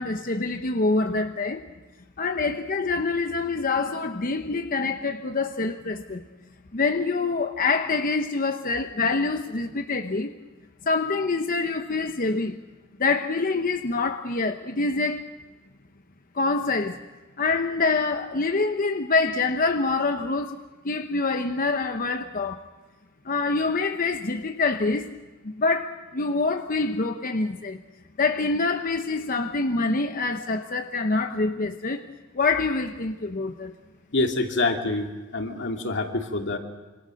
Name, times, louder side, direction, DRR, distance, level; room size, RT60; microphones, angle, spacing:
voice 1, 0.0-1.7 2.2-6.2 6.7-10.3 10.8-12.6 13.0-15.3 16.3-17.0 17.4-20.6 20.8-22.6 23.2-25.2 25.4-27.8 28.2-32.0 32.3-33.7, left 3 dB, 40° left, 0.9 m, -25 dB
voice 2, 34.1-36.6, left 2 dB, 55° left, 2.6 m, -26 dB
26.5 x 26.0 x 6.4 m
head